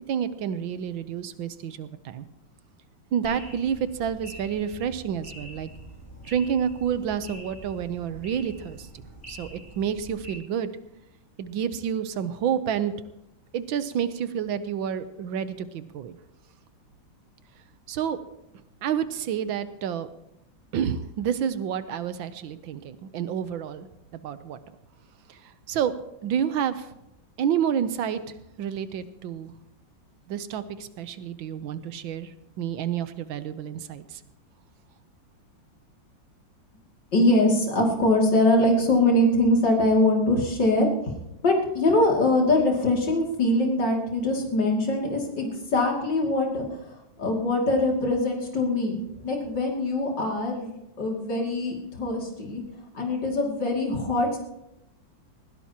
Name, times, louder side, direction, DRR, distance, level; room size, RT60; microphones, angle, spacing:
voice 1, 0.1-2.3 3.1-5.7 6.2-8.9 9.3-10.7 11.4-12.9 13.5-16.2 17.9-18.2 18.8-20.1 20.7-24.6 25.3-25.9 26.2-26.9 27.4-29.5 30.3-34.2, right 8 dB, 80° right, 12 dB, 1.6 m, -29 dB
sound 1, 3.2-10.3, right 1 dB, 10° left, 6.7 m, -45 dB
voice 2, 37.1-40.9 41.4-49.0 49.2-52.6 52.9-54.4, left 1 dB, 65° left, 0 dB, 3.3 m, -23 dB
19.5 x 16.5 x 2.9 m, 0.87 s
omnidirectional pair, 2.1 m